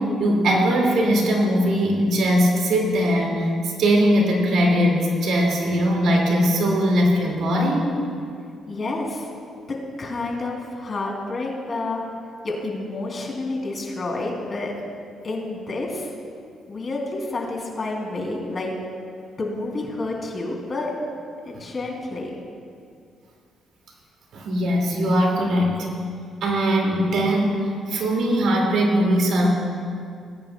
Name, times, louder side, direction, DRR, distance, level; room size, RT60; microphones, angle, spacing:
voice 1, 0.0-8.0 24.3-25.9 26.4-29.5, equal, 75° right, -1 dB, 2.1 m, -20 dB
voice 2, 8.7-9.3 10.0-12.0 12.4-14.7 15.2-16.1 16.7-18.7 19.3-21.0 21.4-22.3, left 2 dB, 40° left, -1 dB, 2.5 m, -29 dB
19.0 x 9.9 x 2.2 m, 2.3 s
cardioid pair, 90°, 0 cm